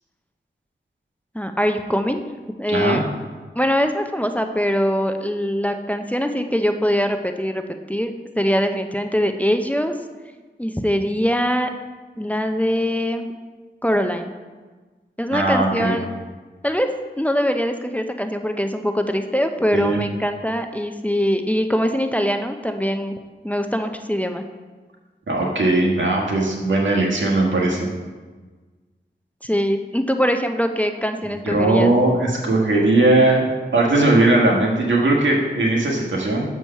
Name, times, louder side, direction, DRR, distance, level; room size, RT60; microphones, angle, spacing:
voice 1, 1.3-2.2 2.6-3.0 3.6-7.6 7.9-9.9 10.6-11.7 12.2-13.3 13.8-14.3 15.2-16.1 16.6-16.9 17.2-23.2 23.4-24.4 29.4-31.9, equal, 5° left, 6 dB, 0.6 m, -22 dB
voice 2, 2.7-3.0 15.3-15.9 19.7-20.0 25.3-27.9 31.4-33.4 33.7-36.4, right 2 dB, 80° right, -2 dB, 1.5 m, -18 dB
7.0 x 4.6 x 5.6 m, 1.4 s
cardioid pair, 50°, 19 cm